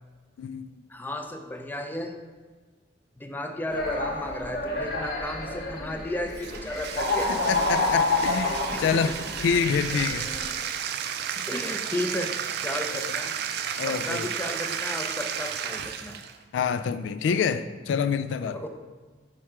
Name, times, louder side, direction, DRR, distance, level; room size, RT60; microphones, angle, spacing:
voice 1, 0.4-0.8 7.3-10.3 13.8-14.3 16.5-18.6, left 6 dB, 85° left, 0.3 m, -27 dB
voice 2, 0.9-2.2 3.2-7.4 8.7-9.1 11.4-13.3 13.9-16.2 18.4-18.8, left 1 dB, 10° left, 0.4 m, -34 dB
sound 1, 3.7-10.5, left 2 dB, 60° left, 0.8 m, -29 dB
Bathtub (filling or washing), 6.3-16.4, right 8 dB, 60° right, 0.3 m, -33 dB
4.6 x 4.3 x 4.8 m
head